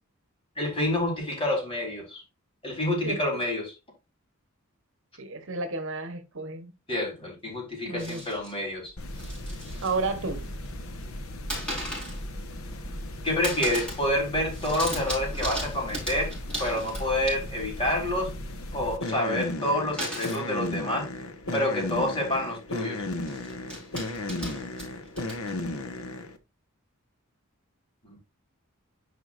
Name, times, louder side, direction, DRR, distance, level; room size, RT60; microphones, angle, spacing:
voice 1, 0.6-2.2 2.6-3.7 6.9-8.9 13.2-16.3 16.6-18.3 18.7-21.1 21.5-23.1 28.0-28.2, left 1 dB, 25° left, 4.0 m, -28 dB
voice 2, 5.2-6.7 7.9-8.2 9.8-10.5, right 3 dB, 65° right, 1.1 m, -31 dB
sound 1, 8.0-8.5 9.0-10.0 10.3-10.8 11.5-12.2 12.6-13.1 13.4-14.1 14.3-17.7 20.0-20.5 21.4-21.5 21.8-22.0 23.1-25.8, equal, 5° left, 4.7 m, -37 dB
sound 2, 9.0-26.4, left 1 dB, 80° left, 1.1 m, -36 dB
11.0 x 4.9 x 2.6 m
head